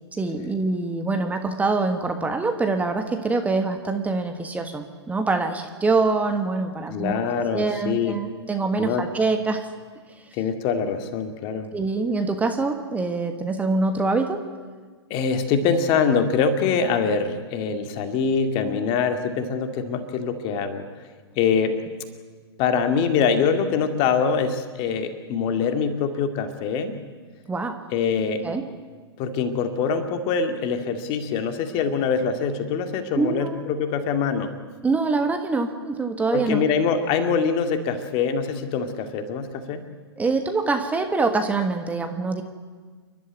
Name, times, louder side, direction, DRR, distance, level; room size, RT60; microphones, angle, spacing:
voice 1, 0.1-7.2 7.5-9.7 11.7-14.4 27.5-27.8 28.4-28.6 33.2-33.7 34.8-36.6 40.2-42.4, right 3 dB, 10° right, 6 dB, 1.5 m, -24 dB
voice 2, 6.9-8.2 8.8-9.0 10.4-11.7 15.1-20.9 21.4-21.7 22.6-26.9 27.9-28.4 29.2-34.6 36.3-39.8, left 6 dB, 35° left, 7 dB, 2.3 m, -24 dB
29.5 x 12.0 x 9.4 m, 1.5 s
figure-of-eight pair, 115°, 15 cm